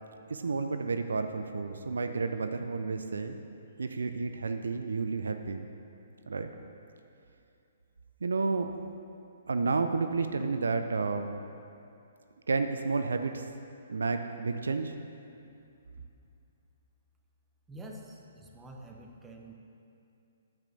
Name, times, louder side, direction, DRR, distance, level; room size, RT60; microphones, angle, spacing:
voice 1, 0.3-3.4 3.8-5.7 6.3-6.5 8.2-8.7 9.5-11.3 12.5-13.5 13.9-15.0, right 4 dB, 70° right, 7 dB, 0.5 m, -31 dB
voice 2, 17.7-19.5, right 1 dB, 10° right, 0 dB, 1.1 m, -47 dB
9.4 x 7.4 x 6.5 m, 2.7 s
figure-of-eight pair, 125°, 0 cm